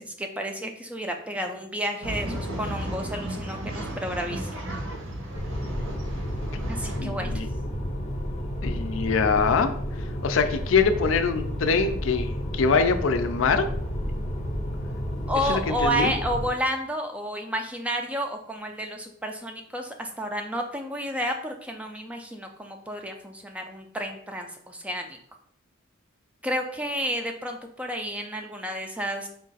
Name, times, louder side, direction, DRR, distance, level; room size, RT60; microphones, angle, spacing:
voice 1, 0.0-4.5 6.7-7.3 15.3-25.2 26.4-29.3, equal, 5° right, 4 dB, 0.3 m, -31 dB
Male speech man speaking / Chatter / Rattle, 2.0-7.0, right 1 dB, 85° right, 1.0 m, -34 dB
sound 1, 5.4-16.5, equal, 35° left, 0.6 m, -31 dB
voice 2, 7.0-7.5 8.6-13.7 15.4-16.1, left 5 dB, 75° left, 8 dB, 0.4 m, -24 dB
4.6 x 2.4 x 3.9 m, 0.67 s
head